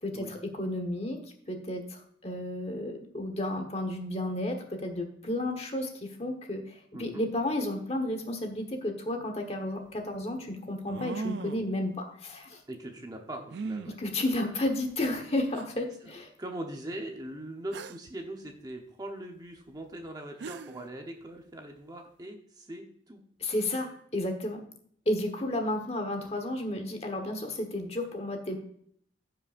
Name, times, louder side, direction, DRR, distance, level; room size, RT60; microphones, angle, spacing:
voice 1, 0.0-12.6 13.9-16.3 23.4-24.6 25.0-28.6, left 1 dB, 35° left, 4 dB, 1.3 m, -32 dB
sound 1, 9.4-9.5 10.9-11.7 13.5-13.9 14.9-15.0 15.5-15.6 17.7-18.1 20.0-20.1 20.4-20.9, right 4 dB, 65° right, 0.4 m, -38 dB
voice 2, 12.7-14.0 16.4-23.2, right 1 dB, 20° right, 3 dB, 0.9 m, -41 dB
15.0 x 5.5 x 2.6 m, 0.64 s
head